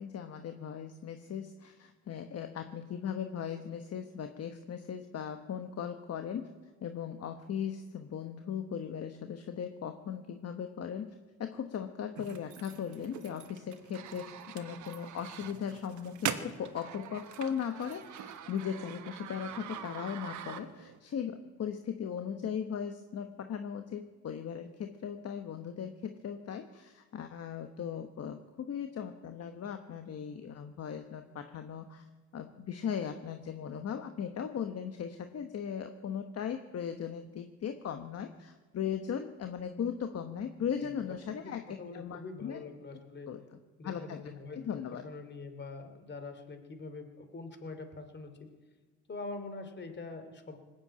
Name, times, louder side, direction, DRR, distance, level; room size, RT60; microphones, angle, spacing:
voice 1, 0.0-6.5 6.8-32.0 32.3-41.6 41.9-42.6 43.3-44.2 44.5-45.0, left 8 dB, 55° left, 7 dB, 1.1 m, -38 dB
sound 1, 12.2-21.0, right 9 dB, 75° right, 1.3 m, -43 dB
voice 2, 41.8-43.3 43.8-44.6 45.0-48.5 49.1-50.6, left 3 dB, 35° left, 7 dB, 2.8 m, -44 dB
19.5 x 8.0 x 8.7 m, 1.4 s
cardioid pair, 90°, 30 cm